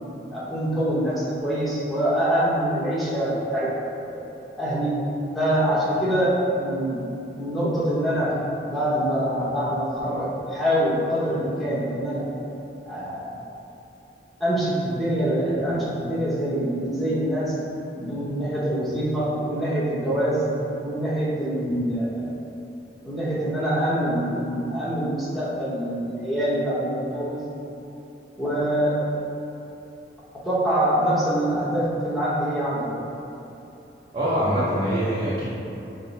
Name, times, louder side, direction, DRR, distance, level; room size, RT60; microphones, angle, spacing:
voice 1, 0.0-3.7 4.1-4.2 4.6-5.0 5.3-7.0 7.3-8.4 8.7-12.2 12.9-13.4 14.4-17.5 18.0-20.5 20.8-22.3 23.0-27.5 28.4-28.9 30.4-33.1, right 1 dB, ahead, -10 dB, 0.9 m, -25 dB
voice 2, 34.1-35.5, equal, 35° right, -9 dB, 0.7 m, -23 dB
5.8 x 2.1 x 4.0 m, 3.0 s
head